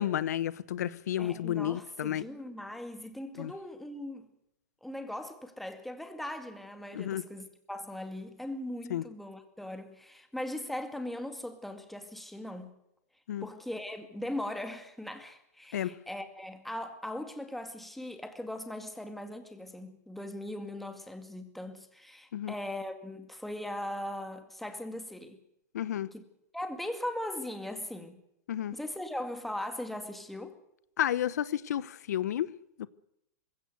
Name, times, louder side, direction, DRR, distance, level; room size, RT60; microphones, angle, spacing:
voice 1, 0.0-2.2 3.4-3.5 6.9-7.2 8.9-9.0 13.3-13.5 15.7-16.0 22.3-22.5 25.7-26.1 28.5-28.7 31.0-32.5 32.8-32.9, left 11 dB, 80° left, 0.9 m, -31 dB
voice 2, 1.2-4.3 4.8-12.7 13.4-25.4 26.1-26.2 26.5-28.2 28.7-30.6, left 1 dB, ahead, 2.2 m, -39 dB
20.5 x 16.5 x 8.0 m
hypercardioid pair, 140°, 9 cm